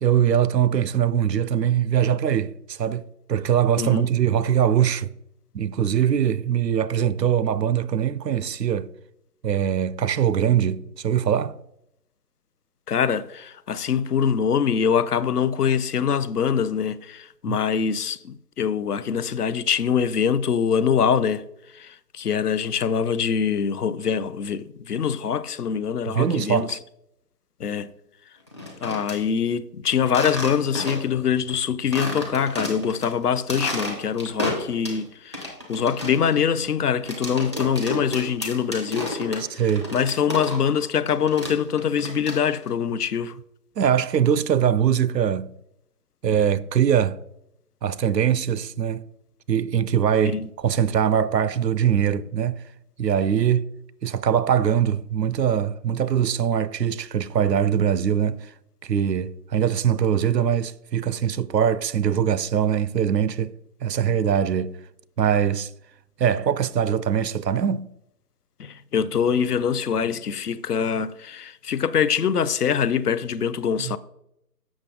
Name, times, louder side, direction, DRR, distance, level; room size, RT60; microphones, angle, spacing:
voice 1, 0.0-3.0 3.3-5.1 5.5-8.9 9.4-11.5 17.5-17.6 26.2-26.8 39.6-39.9 43.8-45.5 46.2-47.2 47.8-49.0 49.5-52.6 53.0-53.7 54.0-58.5 58.8-63.5 63.8-64.8 65.2-65.7 66.2-67.9 73.8-74.0, right 9 dB, 85° right, 0.6 m, -22 dB
voice 2, 3.8-4.1 12.9-21.4 21.7-26.8 27.6-27.9 28.8-39.6 39.9-43.4 50.2-50.5 68.6-74.0, left 7 dB, 70° left, 0.6 m, -24 dB
sound 1, 28.5-29.2 30.1-31.2 31.5-31.6 31.9-33.1 33.4-35.0 35.3-40.8 41.1-42.7, left 1 dB, 20° left, 0.6 m, -31 dB
7.3 x 6.1 x 3.7 m
figure-of-eight pair, 150°, 48 cm